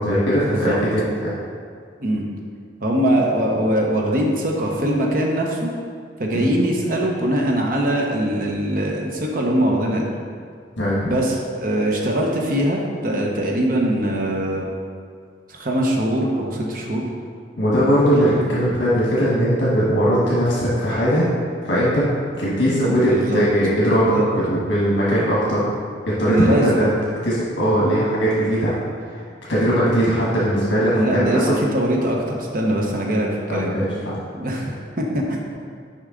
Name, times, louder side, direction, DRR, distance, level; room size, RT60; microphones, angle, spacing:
voice 1, 0.0-1.3 6.3-6.5 10.8-11.0 17.6-21.3 21.6-22.1 22.4-25.7 26.0-26.9 27.2-28.8 29.5-31.6 33.5-34.2, equal, 80° left, -7 dB, 1.4 m, -19 dB
voice 2, 2.8-5.7 6.2-10.0 11.1-14.7 15.5-17.0 18.1-18.4 22.9-23.4 24.0-24.3 26.3-26.8 27.8-28.0 30.9-33.7 34.3-35.5, right 1 dB, 45° right, -1 dB, 0.8 m, -22 dB
6.5 x 4.8 x 3.7 m, 2.1 s
head